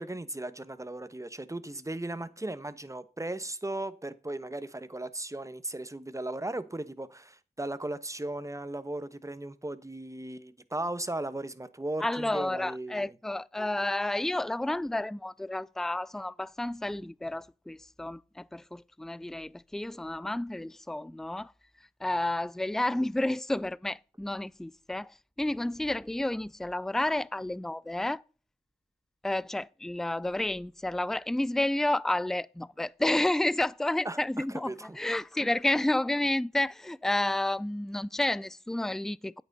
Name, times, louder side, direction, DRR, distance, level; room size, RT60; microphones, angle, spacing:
voice 1, 0.0-13.1 34.0-35.0 35.4-35.5, right 1 dB, 20° right, 1.1 m, -37 dB
voice 2, 12.0-21.5 22.0-28.2 29.2-39.4, left 1 dB, ahead, 0.4 m, -30 dB
9.1 x 9.0 x 4.0 m
cardioid pair, 40°, 17 cm